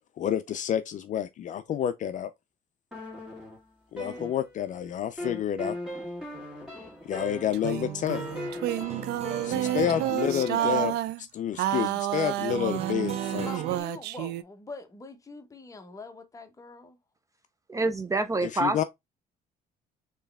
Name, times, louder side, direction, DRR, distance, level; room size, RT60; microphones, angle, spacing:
voice 1, 0.2-2.3 3.9-5.8 7.0-8.2 9.4-10.9 11.2-13.5 18.4-18.8, left 9 dB, 50° left, 0.5 m, -29 dB
sound 1, 2.9-4.8 5.2-11.0, left 1 dB, 5° right, 2.5 m, -38 dB
sound 2, 7.5-11.2 11.6-14.4, right 14 dB, 80° right, 0.4 m, -30 dB
sound 3, 8.8-10.1 12.5-13.8, right 8 dB, 40° right, 0.9 m, -37 dB
voice 2, 13.4-17.0, left 3 dB, 20° left, 1.0 m, -43 dB
voice 3, 17.7-18.8, right 2 dB, 20° right, 0.5 m, -27 dB
4.5 x 3.1 x 3.4 m
cardioid pair, 110°, 17 cm